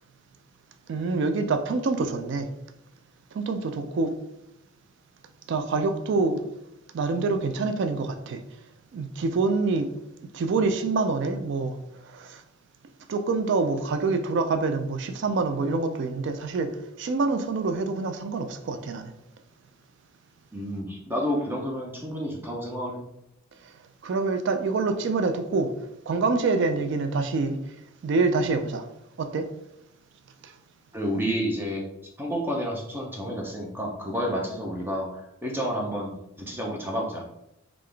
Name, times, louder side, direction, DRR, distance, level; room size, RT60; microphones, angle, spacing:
voice 1, 0.9-2.5 3.3-4.1 5.5-6.4 6.9-8.4 8.9-9.9 10.3-11.8 12.0-12.4 13.1-19.1 24.0-25.7 26.1-27.6 28.0-28.9 29.2-29.5 30.4-30.5, right 3 dB, 55° right, 0.3 m, -26 dB
voice 2, 20.5-23.0 30.9-31.8 32.2-35.1 35.4-36.1 36.4-37.2, equal, 10° right, 0.6 m, -30 dB
3.6 x 2.4 x 3.3 m
head